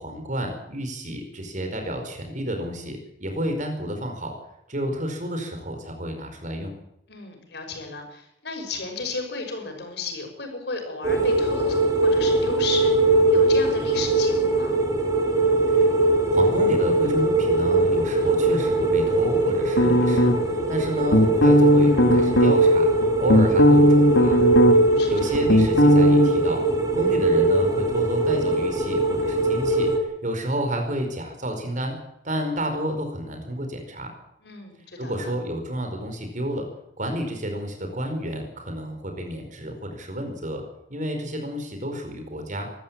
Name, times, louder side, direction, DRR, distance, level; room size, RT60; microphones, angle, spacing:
voice 1, 0.0-4.3 4.7-6.7 15.7-15.9 16.3-22.9 23.2-24.4 25.1-26.6 26.9-29.9 30.2-32.0 32.2-34.1 35.0-36.7 37.0-40.6 40.9-42.7, equal, 45° right, 5 dB, 4.9 m, -30 dB
voice 2, 7.1-12.9 13.3-14.8 24.7-25.4 34.4-35.3, left 3 dB, 70° left, 4 dB, 6.2 m, -34 dB
sound 1, 11.0-30.0, right 2 dB, 20° right, 4.4 m, -21 dB
sound 2, 19.8-20.6 21.1-22.5 23.0-25.0 25.2-26.3, left 1 dB, 85° left, 2.3 m, -17 dB
23.0 x 13.5 x 8.9 m, 0.80 s
head